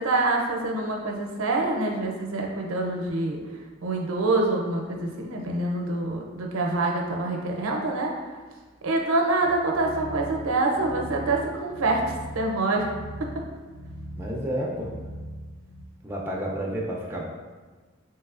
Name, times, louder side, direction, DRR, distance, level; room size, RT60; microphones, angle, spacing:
voice 1, 0.0-3.4 3.8-8.1 8.8-12.9 13.2-13.3, right 2 dB, 85° right, 1 dB, 0.5 m, -26 dB
sound 1, 9.4-15.9, equal, 75° left, 0.4 m, -40 dB
voice 2, 14.2-14.9 16.0-17.2, right 1 dB, 10° right, -3 dB, 0.4 m, -30 dB
3.2 x 3.1 x 2.4 m, 1.3 s
head